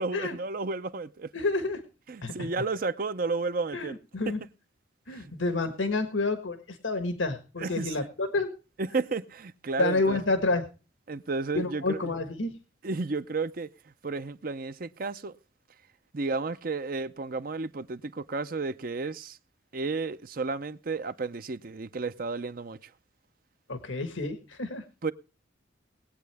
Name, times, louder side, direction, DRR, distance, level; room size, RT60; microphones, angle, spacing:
voice 1, 0.0-1.3 2.1-4.0 5.1-5.2 7.6-8.0 8.8-10.2 11.1-12.1 12.8-13.7 14.0-15.4 16.1-19.4 19.7-22.9 25.0-25.1, right 3 dB, 50° right, 0.6 m, -32 dB
voice 2, 1.3-1.8 2.2-2.5 3.7-4.4 5.1-8.5 9.8-10.7 11.5-12.5 23.7-24.8, left 3 dB, 85° left, 1.5 m, -29 dB
20.5 x 8.6 x 3.4 m
head